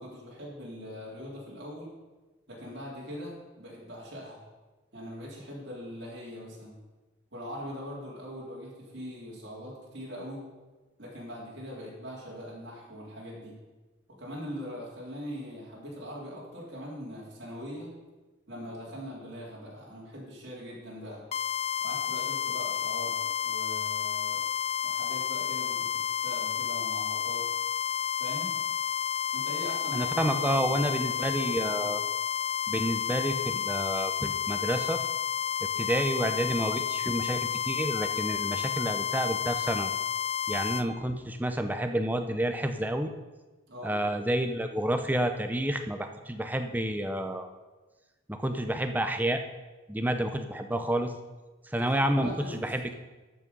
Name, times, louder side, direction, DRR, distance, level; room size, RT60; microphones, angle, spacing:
voice 1, 0.0-1.9 2.5-4.4 4.9-6.8 7.3-10.4 11.0-13.6 14.1-17.9 18.5-21.2 21.8-24.4 24.8-27.5 28.2-28.5 29.3-30.8 31.1-32.0 43.7-44.0 51.8-52.7, equal, 55° right, -5 dB, 3.3 m, -41 dB
sound 1, 21.3-40.9, left 9 dB, 30° left, 0.3 m, -31 dB
voice 2, 29.9-32.0 32.7-35.0 35.8-39.9 40.5-43.1 43.8-47.5 48.3-49.4 49.9-51.1 51.7-52.9, right 1 dB, 10° right, 7 dB, 0.6 m, -29 dB
12.5 x 6.2 x 5.4 m, 1.2 s
head